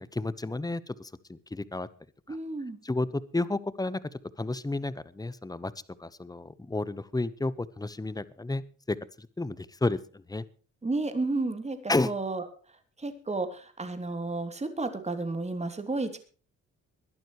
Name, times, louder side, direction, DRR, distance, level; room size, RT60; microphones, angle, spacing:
voice 1, 0.0-1.9 2.3-2.4 2.8-4.0 4.4-5.7 6.0-10.4 11.9-12.1, left 2 dB, 10° left, 16 dB, 1.1 m, -31 dB
voice 2, 2.3-2.8 10.8-12.4 13.0-16.2, right 3 dB, 20° right, 8 dB, 3.2 m, -32 dB
22.0 x 12.0 x 3.2 m, 0.39 s
cardioid pair, 90°, 30 cm